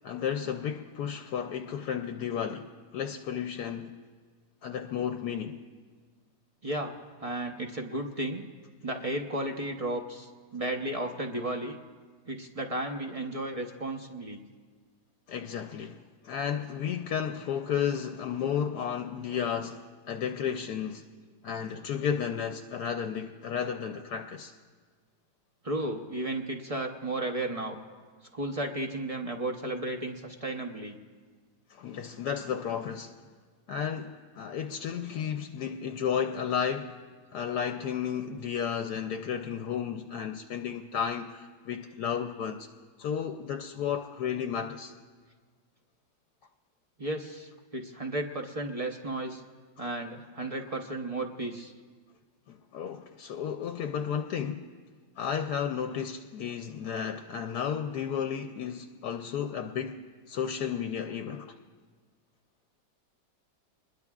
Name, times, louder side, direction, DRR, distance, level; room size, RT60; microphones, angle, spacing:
voice 1, 0.0-4.0 4.6-5.6 15.3-21.0 21.4-24.5 31.7-33.1 33.7-37.0 37.3-42.7 43.0-44.9 49.8-49.9 52.5-54.7 55.2-60.0 60.3-61.5, left 8 dB, 75° left, 1.1 m, -33 dB
voice 2, 6.6-8.4 8.8-11.8 12.3-14.4 25.6-27.8 28.3-30.9 47.0-49.4 49.8-51.7, right 1 dB, 35° right, 0.6 m, -34 dB
26.0 x 21.0 x 2.4 m
omnidirectional pair, 1.9 m